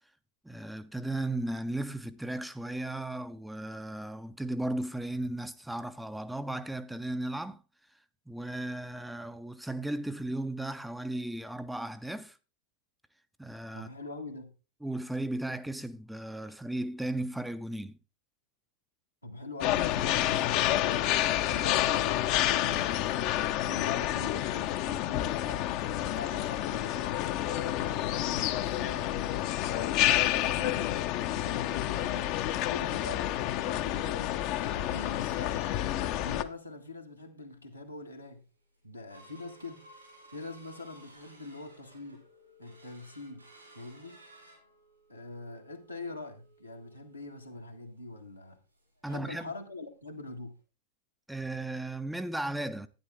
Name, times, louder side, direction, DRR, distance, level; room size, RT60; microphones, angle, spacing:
voice 1, 0.4-7.6 8.3-12.4 13.4-13.9 14.8-18.0 49.0-49.5 51.3-52.9, right 1 dB, 5° right, 0.5 m, -35 dB
voice 2, 13.7-14.5 19.2-21.0 21.5-23.3 23.6-29.3 29.7-32.3 32.7-35.7 36.2-38.4 38.8-39.9 40.3-42.2 42.6-43.5 43.7-44.2 45.1-48.6 49.1-50.5, left 2 dB, 90° left, 1.7 m, -44 dB
sound 1, 19.6-36.4, left 13 dB, 45° left, 0.7 m, -29 dB
sound 2, 34.5-36.4 36.8-36.9 37.3-37.6 38.1-38.2 38.5-49.1 49.4-49.5 49.8-50.0 50.5-50.6, right 1 dB, 90° right, 6.5 m, -57 dB
11.0 x 9.6 x 3.4 m
figure-of-eight pair, 90°, 0 cm